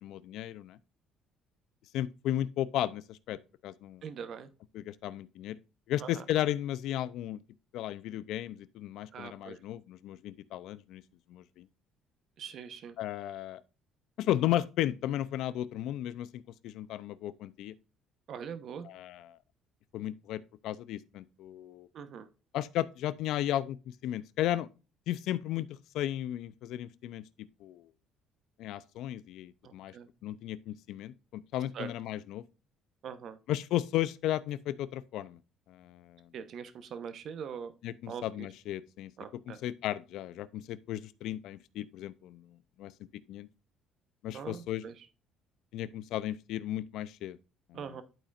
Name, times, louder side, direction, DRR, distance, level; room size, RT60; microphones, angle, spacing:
voice 1, 0.0-0.8 1.9-4.0 4.7-5.6 5.9-7.4 7.7-11.0 11.3-11.7 13.0-13.6 14.2-17.7 18.9-19.4 19.9-21.9 22.5-24.7 25.1-25.7 25.9-27.2 27.6-27.9 28.6-29.9 30.2-32.4 33.5-35.4 35.7-36.3 37.8-39.1 39.5-42.9 43.3-43.5 44.2-44.8 45.7-47.4 47.7-47.8, left 13 dB, 75° left, 0.5 m, -34 dB
voice 2, 4.0-4.5 6.0-6.2 9.1-9.6 12.4-13.0 18.3-18.9 21.9-22.3 29.6-30.1 31.7-31.9 33.0-33.4 36.3-37.7 38.1-38.5 39.2-39.6 44.3-45.1 47.7-48.0, right 7 dB, 60° right, 0.9 m, -42 dB
12.0 x 4.3 x 2.5 m
cardioid pair, 100°, 0 cm